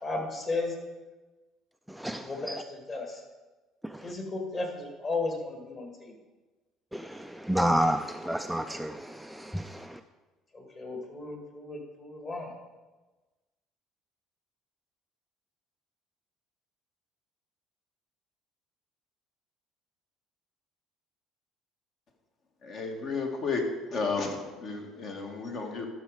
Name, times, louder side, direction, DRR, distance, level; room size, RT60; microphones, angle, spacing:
voice 1, 0.0-0.7 2.1-3.2 4.0-6.2 10.5-12.5, left 3 dB, 30° left, 2.2 m, -35 dB
voice 2, 1.9-2.6 3.8-4.1 6.9-10.0, equal, ahead, 0.3 m, -30 dB
voice 3, 22.6-23.6 23.9-25.9, left 4 dB, 50° left, 1.8 m, -32 dB
13.0 x 6.4 x 4.9 m
cardioid pair, 135°, 0 cm